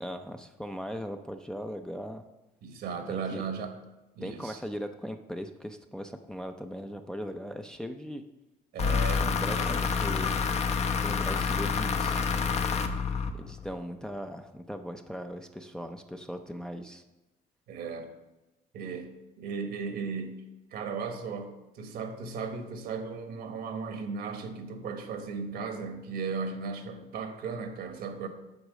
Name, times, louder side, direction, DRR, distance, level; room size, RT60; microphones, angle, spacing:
voice 1, 0.0-2.2 3.1-3.5 4.2-8.2 9.2-10.4 11.0-12.2 13.3-17.0, equal, 5° left, 5 dB, 0.5 m, -39 dB
voice 2, 2.6-3.8 4.2-4.6 8.7-9.8 17.7-18.1 18.7-19.1 19.4-20.4 20.7-28.3, right 5 dB, 70° right, 6 dB, 1.4 m, -36 dB
sound 1, 8.8-13.7, left 5 dB, 40° left, 0.8 m, -28 dB
8.2 x 4.6 x 6.3 m, 1.0 s
cardioid pair, 110°, 17 cm